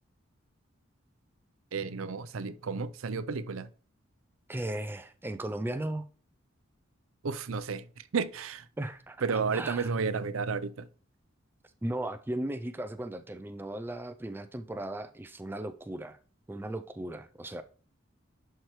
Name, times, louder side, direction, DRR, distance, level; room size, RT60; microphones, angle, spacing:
voice 1, 1.7-3.7 7.2-8.7 9.2-10.9, right 5 dB, 90° right, 0.5 m, -32 dB
voice 2, 4.5-6.1 8.8-9.3 9.5-9.9 11.8-16.2 16.5-17.6, right 1 dB, 10° right, 0.3 m, -36 dB
11.0 x 4.6 x 3.1 m
head